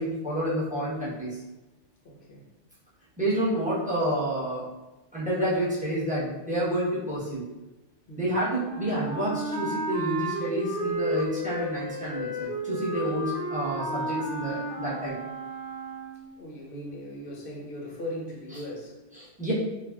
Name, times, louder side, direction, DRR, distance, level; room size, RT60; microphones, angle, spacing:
voice 1, 0.0-1.4 3.2-4.6 5.1-7.4 8.2-15.2 19.1-19.5, right 1 dB, 10° right, -9 dB, 0.7 m, -29 dB
voice 2, 2.0-2.5 8.1-8.3 16.4-19.0, left 1 dB, 55° left, -2 dB, 0.7 m, -39 dB
Wind instrument woodwind instrument, 8.6-16.3, right 1 dB, 55° right, 0.9 m, -33 dB
3.4 x 2.3 x 2.2 m, 1.1 s
omnidirectional pair, 1.2 m